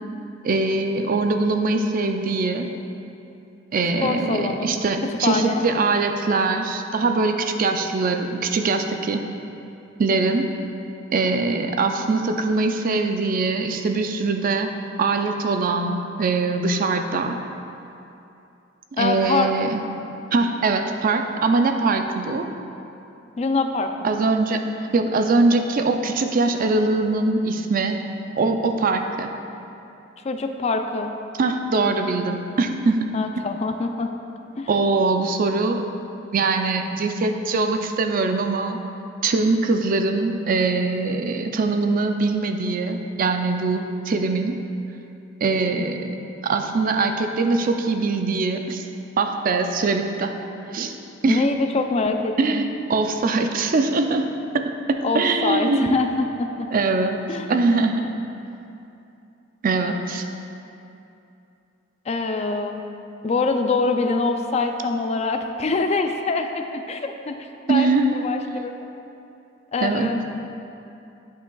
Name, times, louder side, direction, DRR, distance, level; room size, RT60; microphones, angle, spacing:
voice 1, 0.4-2.7 3.7-9.2 10.0-10.5 11.1-14.7 15.0-17.4 19.0-19.8 20.3-22.5 24.0-24.6 24.9-28.0 28.4-29.3 31.4-33.1 34.7-35.9 36.3-38.8 39.2-44.6 45.4-46.1 46.4-48.8 49.2-50.3 50.7-51.0 51.2-51.5 52.4-54.3 54.5-56.0 56.7-57.2 57.5-58.0 59.6-60.3 67.7-68.2 69.8-70.1, right 3 dB, 45° right, 6 dB, 0.4 m, -22 dB
voice 2, 4.0-4.8 5.0-5.6 19.0-19.5 23.4-24.2 30.2-31.1 31.8-32.0 33.1-34.1 34.6-34.7 51.3-52.6 55.0-56.7 57.3-57.5 62.1-62.8 63.2-68.7 69.7-70.2, left 3 dB, 35° left, 6 dB, 0.4 m, -24 dB
9.8 x 5.6 x 2.3 m, 2.8 s
head